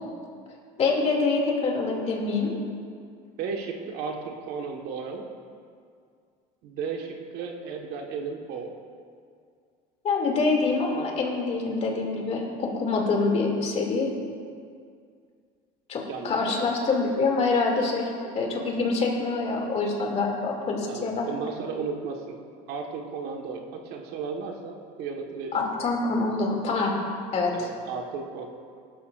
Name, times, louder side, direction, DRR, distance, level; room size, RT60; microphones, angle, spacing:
voice 1, 0.8-2.5 10.0-14.1 15.9-21.3 25.5-26.9 27.3-27.7, left 3 dB, 35° left, -1 dB, 2.6 m, -25 dB
voice 2, 3.4-5.2 6.6-8.7 16.1-16.6 20.9-22.3 22.7-25.6 27.5-28.5, right 5 dB, 65° right, 2 dB, 1.5 m, -34 dB
18.5 x 12.5 x 2.5 m, 2.2 s
cardioid pair, 130°, 18 cm